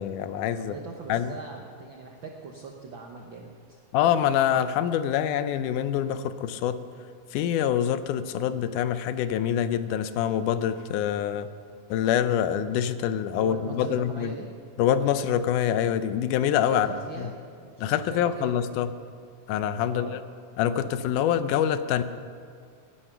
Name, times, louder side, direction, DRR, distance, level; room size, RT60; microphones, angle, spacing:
voice 1, 0.0-0.7 1.1-1.4 3.9-6.8 7.3-11.5 11.9-14.3 14.8-16.9 17.8-18.9 19.5-20.2 20.6-22.0, left 10 dB, 85° left, 12 dB, 2.1 m, -25 dB
voice 2, 0.6-3.8 13.3-14.5 16.7-18.6 19.8-20.2, right 4 dB, 70° right, 1 dB, 1.1 m, -41 dB
17.5 x 9.9 x 5.9 m, 2.2 s
omnidirectional pair, 3.6 m